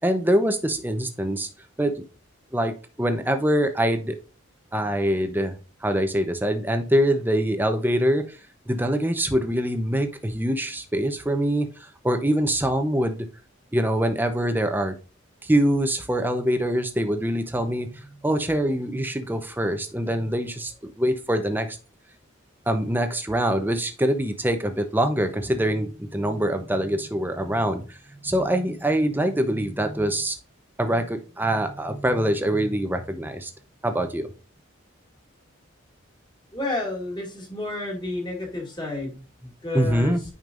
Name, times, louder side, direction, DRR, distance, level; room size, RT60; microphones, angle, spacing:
voice 1, 0.0-1.5 1.8-1.9 2.5-2.7 3.0-4.2 4.7-5.6 5.8-8.4 8.7-13.3 13.7-14.9 15.4-21.8 22.7-28.0 28.2-30.4 30.8-33.5 33.8-34.3 39.7-40.2, right 1 dB, 10° right, 7 dB, 0.7 m, -24 dB
voice 2, 36.5-40.2, left 2 dB, 20° left, -1 dB, 2.4 m, -31 dB
9.2 x 5.2 x 2.5 m, 0.34 s
head